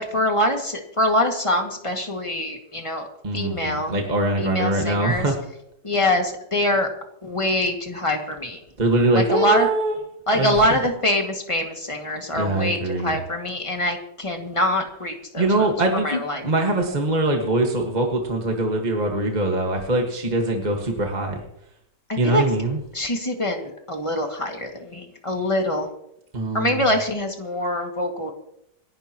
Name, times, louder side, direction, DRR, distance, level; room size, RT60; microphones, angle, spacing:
voice 1, 0.0-3.1 3.3-4.0 4.4-5.3 5.8-6.9 7.2-8.6 9.1-9.7 10.3-15.7 16.0-16.4 22.1-22.4 22.9-25.9 26.5-28.3, left 1 dB, 20° left, 2 dB, 2.1 m, -24 dB
voice 2, 3.2-5.4 8.8-10.0 10.3-10.8 12.1-13.2 15.4-21.4 22.2-22.8 26.3-26.9, right 2 dB, 25° right, 1 dB, 1.8 m, -23 dB
28.0 x 11.5 x 3.0 m, 0.77 s
omnidirectional pair, 1.8 m